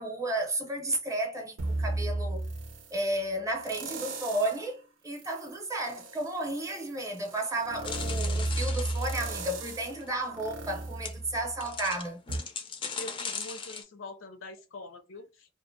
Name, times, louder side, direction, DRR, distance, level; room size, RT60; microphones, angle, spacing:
voice 1, 0.0-2.5 2.9-12.2, right 1 dB, 15° right, 0.6 m, -33 dB
sound 1, 1.6-3.0 3.6-4.7 5.1-11.8 12.3-12.4, right 2 dB, 80° right, 0.5 m, -34 dB
sound 2, 7.8-9.4 10.0-10.1 10.6-10.7 11.0-11.1 11.6-13.8, left 5 dB, 25° left, 0.4 m, -38 dB
voice 2, 13.0-15.5, left 2 dB, 85° left, 0.6 m, -44 dB
2.5 x 2.0 x 2.5 m
head